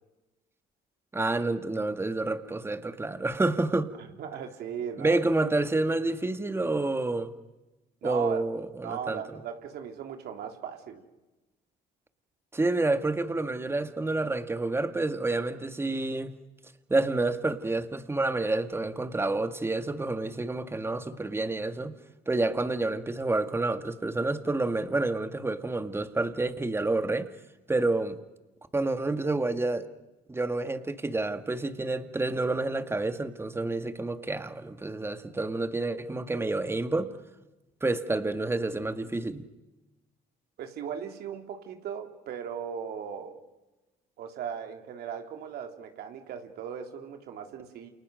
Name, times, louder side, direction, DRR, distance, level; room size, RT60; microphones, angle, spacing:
voice 1, 1.1-3.9 5.0-7.3 8.0-9.2 12.5-16.3 16.9-22.0 22.3-27.3 27.7-28.2 28.7-29.9 30.3-37.1 37.8-39.5, right 2 dB, 15° right, 9 dB, 1.9 m, -29 dB
voice 2, 4.2-5.2 8.0-8.5 8.8-11.0 40.6-43.4 44.2-47.9, right 8 dB, 70° right, 4 dB, 3.4 m, -37 dB
29.0 x 28.5 x 6.5 m, 1.1 s
cardioid pair, 110°, 17 cm